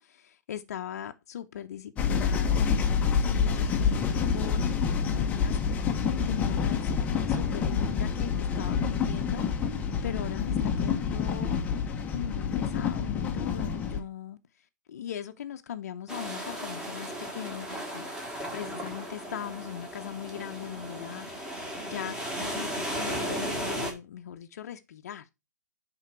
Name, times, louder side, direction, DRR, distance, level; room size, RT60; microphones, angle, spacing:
voice 1, 0.0-11.5 12.1-14.4 14.9-21.3 21.8-25.3, left 10 dB, 55° left, 0.8 m, -39 dB
sound 1, 2.0-14.0, left 6 dB, 15° left, 0.9 m, -27 dB
sound 2, 16.1-23.9, equal, 5° right, 1.9 m, -35 dB
10.5 x 3.7 x 4.5 m
hypercardioid pair, 135°, 10 cm